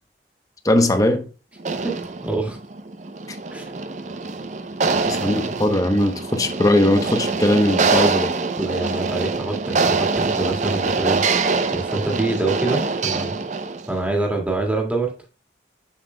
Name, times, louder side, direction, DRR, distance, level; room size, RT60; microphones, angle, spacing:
voice 1, 0.6-1.3 5.1-8.3, left 1 dB, 20° left, 0.8 m, -19 dB
sound 1, 1.6-13.9, right 4 dB, 40° right, 0.6 m, -24 dB
voice 2, 1.8-2.6 3.5-3.6 4.9-5.3 8.6-11.2 11.7-13.4 13.9-15.1, right 2 dB, 10° right, 1.7 m, -26 dB
7.3 x 7.0 x 2.2 m
head